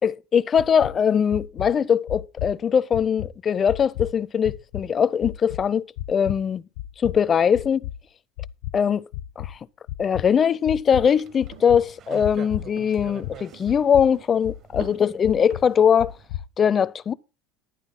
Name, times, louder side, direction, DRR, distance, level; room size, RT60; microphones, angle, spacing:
voice 1, 0.0-6.6 7.0-7.9 8.7-9.1 9.4-9.6 10.0-16.1 16.6-17.1, left 7 dB, 30° left, 0.4 m, -21 dB
sound 1, 0.6-0.9 1.3-1.7 2.1-2.6 2.9-3.3 3.7-4.1 4.4-4.8 5.2-5.6 6.0-6.4 6.8-7.2 7.5-8.0 8.4-8.7 9.1-9.5 9.9-10.2 10.7-11.1 11.4-11.8 12.2-12.7 13.0-13.4 13.7-14.0 14.4-14.9 15.2-15.6 16.0-16.4, left 15 dB, 80° left, 1.0 m, -32 dB
sound 2, 11.1-16.3, right 8 dB, 45° right, 0.8 m, -46 dB
sound 3, 11.5-11.8 12.2-12.5 12.8-13.1 13.5-13.9 14.1-14.5 14.8-15.1 15.5-15.8, right 8 dB, 70° right, 3.0 m, -46 dB
11.5 x 9.5 x 4.1 m
supercardioid pair, 115°, 0 cm